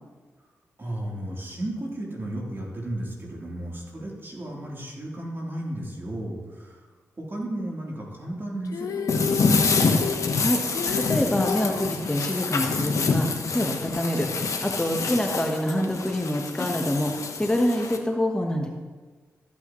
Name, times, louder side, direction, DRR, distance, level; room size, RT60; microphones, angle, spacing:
voice 1, 0.8-6.9 7.3-10.2, right 1 dB, 40° right, -4 dB, 3.5 m, -34 dB
Female singing, 8.6-11.9 13.9-14.0, left 7 dB, 85° left, 0.6 m, -33 dB
sound 1, 9.1-18.0, left 4 dB, 65° left, 1.1 m, -26 dB
voice 2, 10.9-18.7, left 1 dB, 15° left, 2 dB, 1.2 m, -26 dB
14.0 x 8.6 x 3.1 m, 1.4 s
cardioid pair, 50°, 6 cm